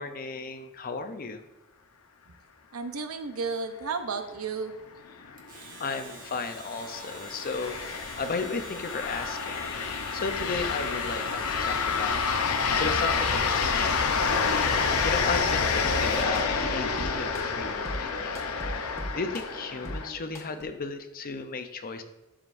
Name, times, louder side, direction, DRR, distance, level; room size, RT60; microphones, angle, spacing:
voice 1, 0.0-1.4 5.2-5.4 5.8-9.6 10.1-12.2 12.8-14.4 14.7-18.3 18.8-22.0, left 4 dB, 40° left, 8 dB, 0.6 m, -35 dB
voice 2, 2.7-4.7, right 4 dB, 80° right, 7 dB, 0.7 m, -33 dB
sound 1, 5.2-20.1, left 5 dB, 90° left, 0.7 m, -28 dB
Domestic sounds home sounds, 5.4-16.4, right 3 dB, 40° right, 1.4 m, -46 dB
sound 2, 14.9-20.6, equal, 15° left, 1.1 m, -40 dB
12.0 x 5.1 x 2.6 m, 1.0 s
head